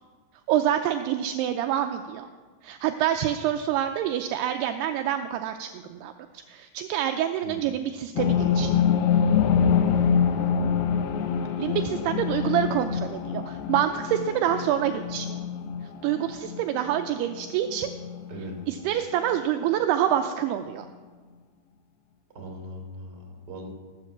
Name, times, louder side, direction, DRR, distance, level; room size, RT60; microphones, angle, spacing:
voice 1, 0.5-2.3 2.6-6.1 6.5-8.8 11.6-15.4 16.0-17.9 18.7-20.9, right 11 dB, 80° right, 7 dB, 2.5 m, -27 dB
sound 1, 8.2-18.6 18.9-19.0 19.3-19.4, left 7 dB, 75° left, 2.6 m, -26 dB
voice 2, 10.2-11.0 18.3-18.5 22.3-23.7, right 1 dB, 25° right, 1 dB, 2.9 m, -40 dB
16.0 x 12.5 x 7.2 m, 1.5 s
omnidirectional pair, 5.1 m